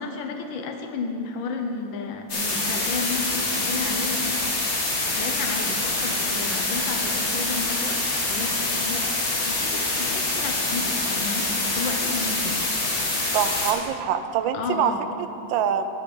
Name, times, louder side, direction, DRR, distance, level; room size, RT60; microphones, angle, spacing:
voice 1, 0.0-4.4 4.9-8.0 8.3-12.6 14.5-15.0, left 4 dB, 70° left, 4 dB, 1.6 m, -32 dB
sound 1, 2.3-13.7, left 2 dB, 45° left, 2.0 m, -25 dB
voice 2, 13.3-14.9 15.2-15.9, right 8 dB, 75° right, 10 dB, 1.3 m, -25 dB
10.5 x 5.1 x 7.7 m, 2.7 s
omnidirectional pair, 2.2 m